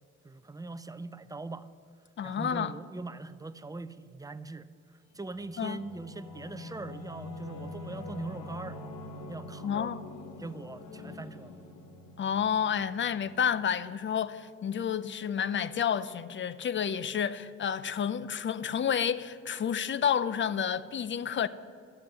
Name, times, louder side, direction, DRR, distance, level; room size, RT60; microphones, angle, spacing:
voice 1, 0.2-1.7 2.2-4.7 5.1-8.8 9.3-9.9 10.4-11.5, right 3 dB, 10° right, 0.6 m, -41 dB
voice 2, 2.2-2.7 5.6-5.8 9.6-10.0 12.2-21.5, left 8 dB, 40° left, 0.6 m, -30 dB
Singing / Musical instrument, 5.1-14.3, left 2 dB, 80° left, 1.3 m, -45 dB
12.5 x 7.4 x 7.9 m
cardioid pair, 90°, 30 cm